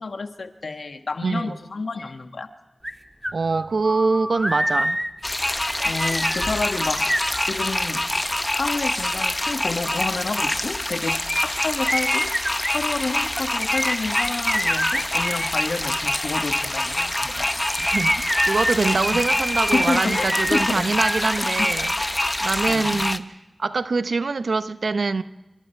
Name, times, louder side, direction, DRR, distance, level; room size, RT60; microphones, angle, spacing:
voice 1, 0.0-2.5 5.8-8.1 8.5-12.3 12.7-17.5 19.1-19.2 19.7-20.8 21.6-21.7 22.7-23.0, left 3 dB, 75° left, 1.7 m, -29 dB
voice 2, 1.2-1.6 3.3-5.0 17.9-21.9 22.4-25.2, right 4 dB, 75° right, 0.9 m, -24 dB
sound 1, 2.8-2.9 3.2-8.0 11.3-15.5 17.3-22.0 22.2-22.3, equal, 5° right, 2.1 m, -27 dB
sound 2, 5.2-23.2, left 1 dB, 25° left, 1.1 m, -25 dB
28.0 x 25.5 x 4.6 m
cardioid pair, 40°, 0 cm